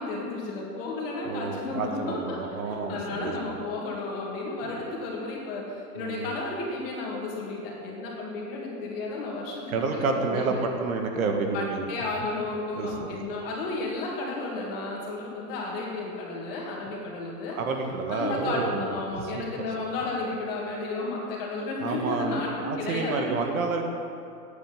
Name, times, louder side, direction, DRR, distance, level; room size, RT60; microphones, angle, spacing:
voice 1, 0.0-2.4 2.6-9.6 9.9-10.7 11.5-17.6 18.1-23.5, left 2 dB, 35° left, -3 dB, 2.6 m, -33 dB
voice 2, 1.3-3.3 4.6-4.8 6.0-6.3 9.7-11.8 12.7-13.2 17.5-18.9 19.3-19.4 21.8-23.8, right 4 dB, 60° right, 3 dB, 1.6 m, -29 dB
10.0 x 9.2 x 7.3 m, 2.5 s
supercardioid pair, 175°, 47 cm